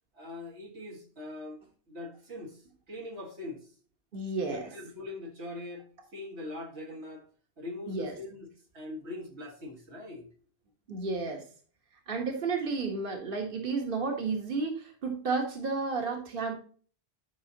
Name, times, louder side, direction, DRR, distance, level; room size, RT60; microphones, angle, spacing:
voice 1, 0.1-1.6 1.9-3.7 4.5-5.9 6.1-7.3 7.6-8.5 8.7-10.3, left 2 dB, 85° right, 2.1 m, -42 dB
voice 2, 4.1-4.6 7.9-8.1 10.9-11.4 12.1-16.5, right 4 dB, 55° right, 1.5 m, -32 dB
11.0 x 5.5 x 2.8 m
omnidirectional pair, 1.1 m